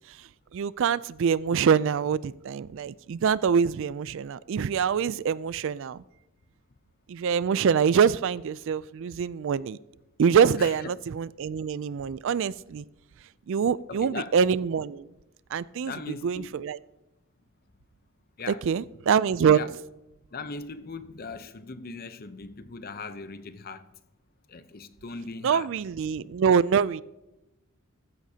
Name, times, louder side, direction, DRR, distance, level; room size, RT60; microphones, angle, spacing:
voice 1, 0.5-6.0 7.1-9.8 10.2-12.8 13.5-15.1 15.5-15.9 16.2-16.8 18.5-19.6 25.4-27.0, right 7 dB, 60° right, 0.3 m, -25 dB
voice 2, 13.9-14.3 15.8-16.6 18.4-18.6 19.5-19.7 20.3-23.8 24.5-25.7, left 4 dB, 45° left, 0.7 m, -39 dB
15.0 x 13.0 x 2.8 m
head